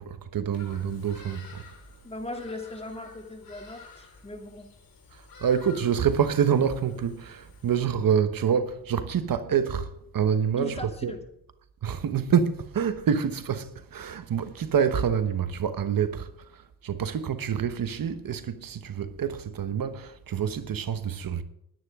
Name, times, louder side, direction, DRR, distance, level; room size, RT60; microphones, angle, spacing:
voice 1, 0.0-1.6 5.1-11.1 11.8-21.4, right 7 dB, 65° right, 1.1 m, -27 dB
Bird vocalization bird call bird song, 0.5-7.8, left 4 dB, 70° left, 4.6 m, -51 dB
voice 2, 2.0-4.7 10.6-11.2, left 2 dB, 15° left, 2.7 m, -38 dB
20.5 x 10.0 x 3.7 m
cardioid pair, 95°, 37 cm